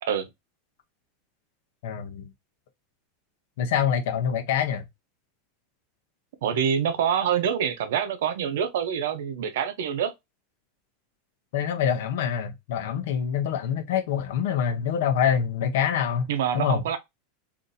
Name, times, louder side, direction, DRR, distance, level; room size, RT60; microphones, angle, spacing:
voice 1, 1.8-2.3 3.6-4.8 11.5-16.3 16.5-16.8, left 8 dB, 65° left, 0.6 m, -25 dB
voice 2, 6.4-10.1 16.3-17.0, right 8 dB, 80° right, 0.6 m, -26 dB
2.6 x 2.6 x 3.9 m
supercardioid pair, 175°, 0 cm